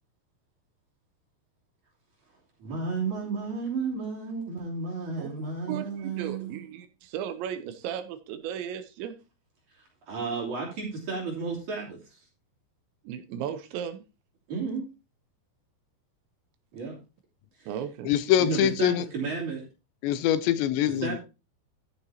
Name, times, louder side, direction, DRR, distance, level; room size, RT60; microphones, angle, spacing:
voice 1, 2.6-6.6 9.7-12.2 14.5-14.9 16.7-17.0 17.6-17.7 18.4-19.7 21.0-21.2, right 4 dB, 45° right, 4.1 m, -32 dB
voice 2, 5.7-9.1 13.0-14.0 17.7-18.1, right 9 dB, 80° right, 3.1 m, -35 dB
voice 3, 18.1-19.0 20.0-21.2, left 11 dB, 80° left, 2.7 m, -24 dB
14.5 x 7.1 x 2.8 m
omnidirectional pair, 5.2 m